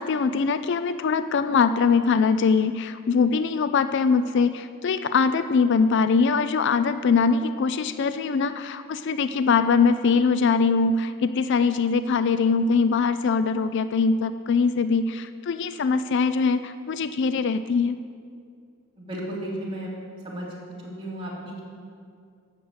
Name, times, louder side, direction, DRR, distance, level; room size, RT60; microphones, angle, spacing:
voice 1, 0.0-18.0, left 5 dB, 55° left, 12 dB, 0.4 m, -22 dB
voice 2, 19.0-19.9 20.2-20.5 21.0-21.6, right 1 dB, 25° right, -5 dB, 2.9 m, -33 dB
12.5 x 6.6 x 7.9 m, 2.3 s
head